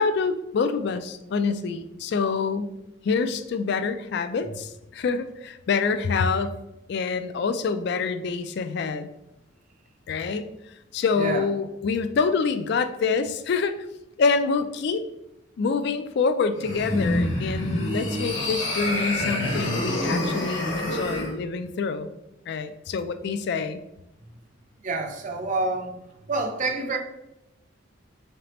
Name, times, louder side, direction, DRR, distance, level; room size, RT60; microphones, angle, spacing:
voice 1, 0.0-2.7 3.0-6.5 6.9-9.1 10.1-10.5 10.9-13.8 14.2-15.1 15.6-22.1 22.5-23.8, left 5 dB, 60° left, 10 dB, 0.3 m, -26 dB
voice 2, 11.2-11.5 24.8-26.0 26.3-27.0, right 3 dB, 40° right, 5 dB, 0.5 m, -27 dB
sound 1, 16.5-21.3, left 1 dB, 85° left, 1.2 m, -27 dB
3.9 x 3.3 x 2.9 m, 0.90 s
head